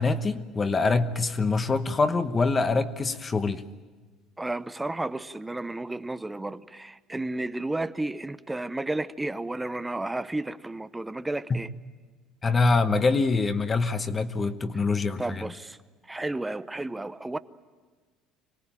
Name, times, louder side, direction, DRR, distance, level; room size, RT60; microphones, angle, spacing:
voice 1, 0.0-3.6 11.5-11.6 12.4-15.5, left 3 dB, 25° left, 10 dB, 1.1 m, -25 dB
voice 2, 4.4-11.7 15.2-15.8 16.1-17.4, right 2 dB, 10° right, 13 dB, 0.7 m, -32 dB
25.0 x 18.0 x 8.9 m, 1.4 s
cardioid pair, 125°, 0 cm